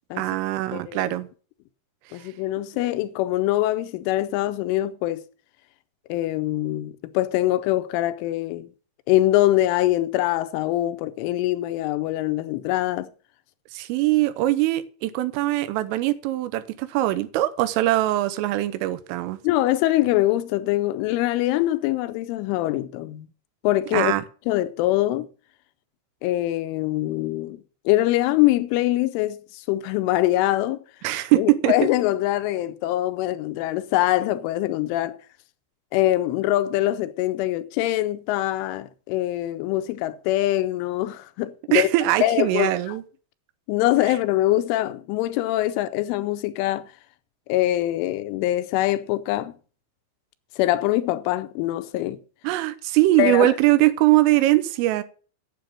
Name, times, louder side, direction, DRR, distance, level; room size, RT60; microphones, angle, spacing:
voice 1, 0.2-1.3 13.7-19.4 23.9-24.2 31.0-31.7 41.7-43.0 52.4-55.0, right 16 dB, 85° right, 3.4 m, -21 dB
voice 2, 0.7-1.2 2.1-5.2 6.1-8.7 9.1-13.1 19.4-23.3 23.6-24.1 24.5-25.3 26.2-27.6 27.9-30.8 31.4-35.2 35.9-41.9 42.2-43.0 43.7-46.9 47.5-49.5 50.6-52.2 53.2-53.5, left 15 dB, 80° left, 3.0 m, -23 dB
9.2 x 7.8 x 7.5 m
omnidirectional pair, 5.8 m